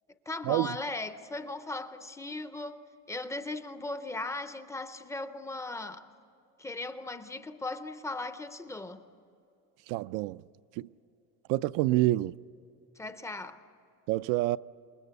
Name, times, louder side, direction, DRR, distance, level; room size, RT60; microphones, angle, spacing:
voice 1, 0.3-2.8 3.1-6.1 6.6-9.0 13.0-13.6, left 2 dB, 10° left, 0.5 m, -38 dB
voice 2, 9.9-10.4 10.8-10.9 11.5-12.4 14.1-14.6, right 17 dB, 80° right, 0.5 m, -27 dB
28.0 x 20.5 x 8.1 m
cardioid pair, 175°, 32 cm